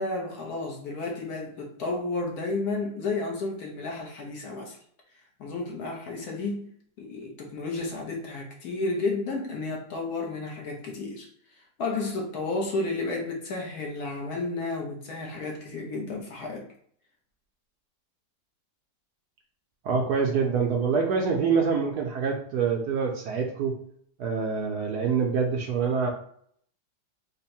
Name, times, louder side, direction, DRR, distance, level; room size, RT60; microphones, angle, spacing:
voice 1, 0.0-4.8 5.4-6.7 7.0-16.7, left 3 dB, 65° left, 0 dB, 1.1 m, -32 dB
voice 2, 19.8-23.7 24.2-26.1, right 5 dB, 70° right, 1 dB, 1.0 m, -25 dB
3.6 x 2.1 x 4.2 m, 0.64 s
omnidirectional pair, 2.0 m